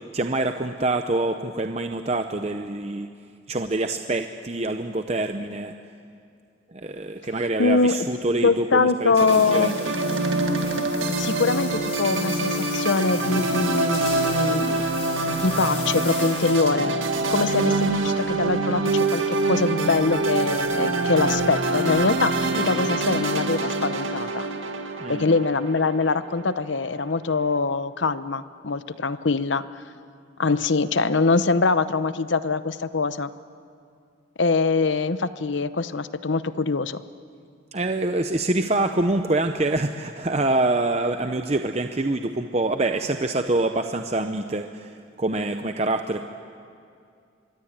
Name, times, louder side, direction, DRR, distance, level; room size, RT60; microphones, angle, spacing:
voice 1, 0.1-3.1 3.5-5.7 6.7-9.7 25.0-25.3 37.7-46.2, right 2 dB, 35° right, 6 dB, 0.7 m, -25 dB
voice 2, 7.6-8.0 8.4-9.8 11.0-14.9 15.2-17.0 17.3-24.5 25.1-29.6 30.4-33.3 34.4-37.0, left 4 dB, 70° left, 13 dB, 0.8 m, -23 dB
sound 1, 9.2-26.5, right 2 dB, 85° right, 1.9 m, -25 dB
sound 2, 9.3-16.8, left 4 dB, 30° left, 5.1 m, -38 dB
24.5 x 23.0 x 8.9 m, 2.4 s
head